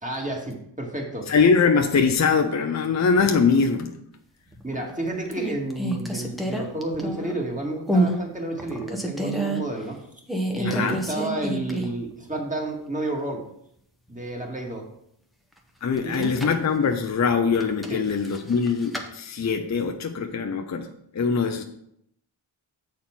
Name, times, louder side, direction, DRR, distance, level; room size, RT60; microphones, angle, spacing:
voice 1, 0.0-1.3 4.6-10.0 10.5-13.4 14.1-14.9 16.0-16.4 17.9-18.0, right 2 dB, 15° right, 0 dB, 2.0 m, -31 dB
voice 2, 1.3-3.9 10.6-11.0 15.8-20.9 21.1-21.6, left 5 dB, 35° left, 5 dB, 0.7 m, -22 dB
sound 1, 4.5-4.9 5.3-7.4 7.9-8.2 8.6-9.6 10.3-12.1 12.4-12.5 16.0-16.6 17.5-19.1, right 1 dB, ahead, 1.0 m, -28 dB
7.2 x 4.4 x 5.8 m, 0.73 s
cardioid pair, 80°, 47 cm